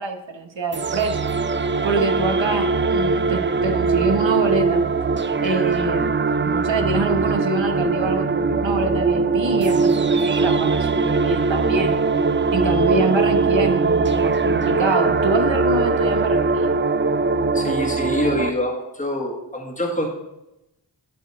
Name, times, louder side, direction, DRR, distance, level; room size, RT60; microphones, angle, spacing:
voice 1, 0.0-1.3 1.8-4.8 5.4-6.2 6.4-11.9 12.5-16.7, right 3 dB, 70° right, 6 dB, 1.1 m, -25 dB
sound 1, 0.7-18.5, right 4 dB, 25° right, 0.4 m, -21 dB
voice 2, 17.5-20.1, left 1 dB, 15° left, -1 dB, 1.5 m, -25 dB
11.0 x 4.1 x 4.8 m, 0.91 s
wide cardioid pair, 40°, 46 cm